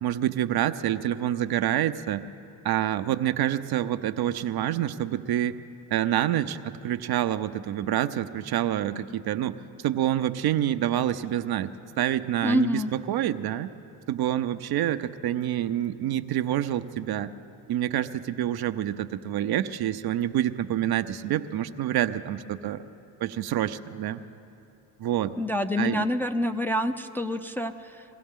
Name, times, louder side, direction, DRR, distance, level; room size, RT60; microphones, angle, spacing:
voice 1, 0.0-2.2 2.6-5.6 5.9-13.7 14.1-17.3 17.7-22.8 23.2-24.2 25.0-25.3 25.8-26.1, right 11 dB, 50° right, 10 dB, 0.6 m, -27 dB
voice 2, 12.4-12.9 25.4-28.0, left 1 dB, 5° left, 5 dB, 0.6 m, -27 dB
23.0 x 16.0 x 3.7 m, 2.7 s
hypercardioid pair, 55°, 49 cm